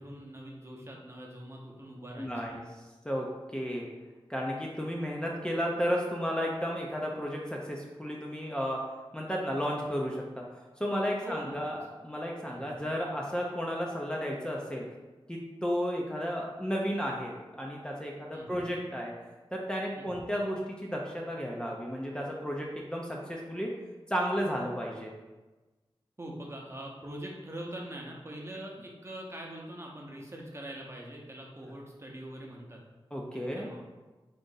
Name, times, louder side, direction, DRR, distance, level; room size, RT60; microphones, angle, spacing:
voice 1, 0.0-2.3 11.2-11.5 12.5-12.8 18.3-18.6 20.0-20.2 26.2-32.8 33.3-33.8, right 1 dB, 30° right, -1 dB, 0.7 m, -43 dB
voice 2, 2.2-2.6 3.0-3.9 4.3-8.8 9.1-10.4 10.8-14.8 15.3-19.1 19.5-23.7 24.1-25.1 33.1-33.7, equal, 10° left, -2 dB, 0.5 m, -33 dB
3.9 x 2.5 x 3.8 m, 1.2 s
wide cardioid pair, 60°, 9 cm